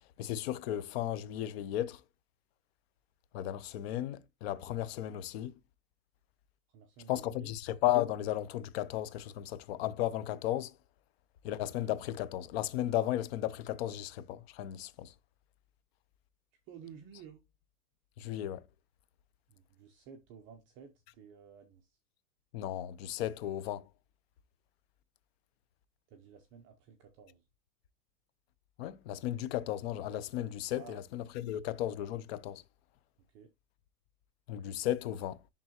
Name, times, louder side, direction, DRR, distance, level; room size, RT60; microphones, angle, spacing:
voice 1, 0.2-2.0 3.3-5.6 7.1-10.7 11.4-15.1 18.2-18.6 22.5-23.9 28.8-32.6 34.5-35.4, left 13 dB, 40° left, 0.7 m, -35 dB
voice 2, 6.7-7.5 16.7-17.4 19.5-22.0 26.1-27.5 30.8-31.0 33.3-33.5, right 7 dB, 25° right, 0.7 m, -53 dB
10.5 x 3.7 x 2.9 m
hypercardioid pair, 145°, 47 cm